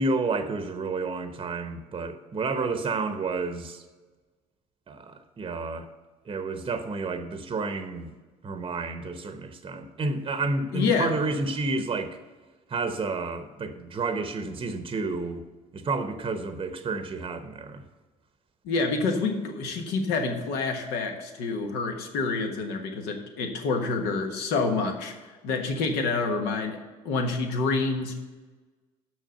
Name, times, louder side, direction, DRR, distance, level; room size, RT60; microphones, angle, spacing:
voice 1, 0.0-3.8 4.9-5.9 6.3-8.1 8.4-12.2 12.7-15.4 15.7-17.8, right 3 dB, 30° right, 0.9 m, -30 dB
voice 2, 10.7-11.1 18.6-25.1 25.4-26.8 27.0-28.1, left 4 dB, 70° left, 1.3 m, -27 dB
6.3 x 6.2 x 6.7 m
hypercardioid pair, 60°, 17 cm